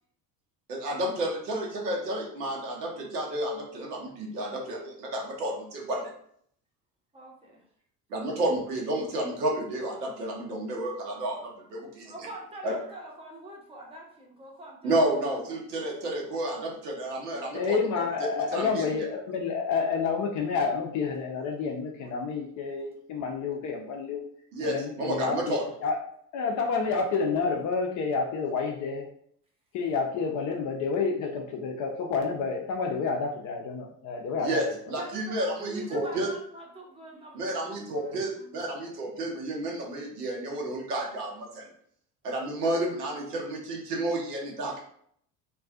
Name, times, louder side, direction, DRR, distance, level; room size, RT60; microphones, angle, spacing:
voice 1, 0.7-6.1 8.1-12.1 12.6-12.8 14.8-18.9 24.5-25.6 34.4-36.3 37.3-41.7 42.2-44.8, right 1 dB, 75° right, -2 dB, 0.8 m, -31 dB
voice 2, 7.1-7.6 10.7-10.9 12.0-15.5 17.2-17.5 35.0-38.6, right 1 dB, 10° right, -1 dB, 0.7 m, -44 dB
voice 3, 17.5-24.2 24.6-26.0 26.3-29.1 29.7-34.6, left 5 dB, 40° left, 2 dB, 0.5 m, -29 dB
2.4 x 2.3 x 2.3 m, 0.64 s
figure-of-eight pair, 60°, 47 cm